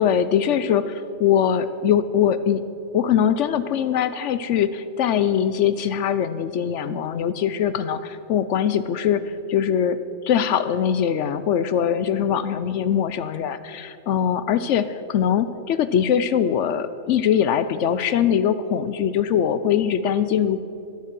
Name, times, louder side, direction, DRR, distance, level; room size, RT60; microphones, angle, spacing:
voice 1, 0.0-2.6 2.9-10.0 10.2-20.6, left 8 dB, 75° left, 13 dB, 0.9 m, -22 dB
12.0 x 12.0 x 7.4 m, 2.8 s
omnidirectional pair, 1.2 m